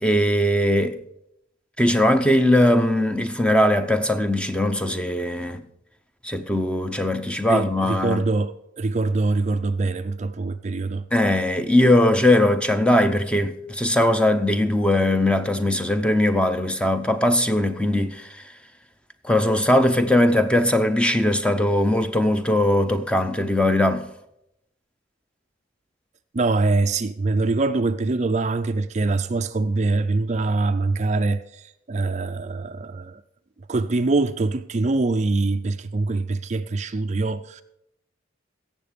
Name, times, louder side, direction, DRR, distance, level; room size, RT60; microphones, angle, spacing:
voice 1, 0.0-1.0 1.8-5.6 6.2-8.2 11.1-18.4 19.2-24.1, left 1 dB, 5° left, 0.6 m, -20 dB
voice 2, 7.5-11.0 26.3-33.2 33.7-37.6, right 3 dB, 35° right, 0.4 m, -24 dB
16.5 x 7.4 x 5.1 m
head